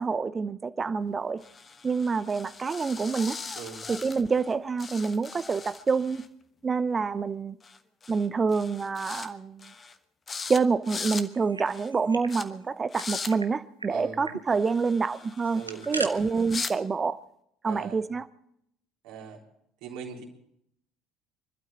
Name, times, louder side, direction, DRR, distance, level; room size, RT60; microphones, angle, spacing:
voice 1, 0.0-1.4 1.8-3.4 3.9-6.2 6.6-7.6 8.1-9.7 10.5-17.2 17.6-18.3, right 5 dB, 25° right, 0.7 m, -27 dB
sound 1, 1.4-4.5 4.8-6.3 7.6-8.3 8.5-9.3 9.6-10.0 10.3-10.6 10.8-11.3 11.7-11.9 12.3-12.4 12.9-13.3 14.5-16.7, left 4 dB, 25° left, 1.3 m, -39 dB
voice 2, 3.5-3.9 13.9-14.2 15.5-16.2 17.6-18.0 19.0-19.4 19.8-20.2, right 7 dB, 60° right, 3.5 m, -40 dB
sound 2, 11.3-12.3 12.6-12.7 13.0-13.5 13.8-13.9 14.2-14.4 15.4-16.1, right 3 dB, 90° right, 0.9 m, -38 dB
26.5 x 12.5 x 4.1 m
figure-of-eight pair, 60°, 0 cm